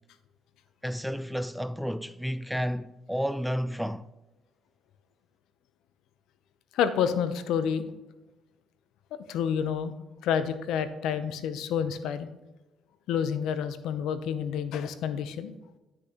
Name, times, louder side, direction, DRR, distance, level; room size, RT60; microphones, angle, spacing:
voice 1, 0.8-4.1, equal, ahead, 0.3 m, -31 dB
voice 2, 6.7-7.8 9.3-9.9 10.2-12.3 13.1-15.5, left 8 dB, 80° left, 0.6 m, -29 dB
9.9 x 6.4 x 2.9 m
cardioid pair, 85°, 0 cm